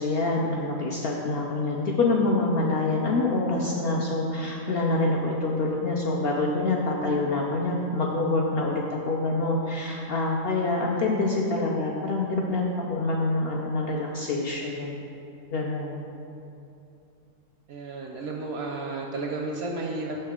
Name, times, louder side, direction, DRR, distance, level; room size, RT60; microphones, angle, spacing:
voice 1, 0.0-12.6 12.9-15.0 15.5-16.1, left 2 dB, 65° left, -2 dB, 0.6 m, -26 dB
voice 2, 17.7-20.2, right 3 dB, 65° right, 0 dB, 0.7 m, -32 dB
6.3 x 5.5 x 3.6 m, 2.7 s
omnidirectional pair, 1.4 m